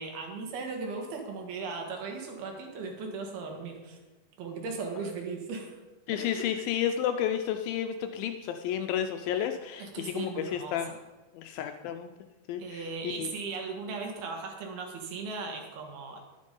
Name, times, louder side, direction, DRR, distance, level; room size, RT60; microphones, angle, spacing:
voice 1, 0.0-4.0 4.4-5.8 6.1-6.5 9.8-11.0 12.6-16.2, right 4 dB, 70° right, 3 dB, 3.5 m, -37 dB
voice 2, 6.1-10.9 11.3-12.1 12.5-13.3, left 9 dB, 80° left, 7 dB, 2.2 m, -31 dB
10.5 x 10.5 x 5.3 m, 1.2 s
omnidirectional pair, 4.6 m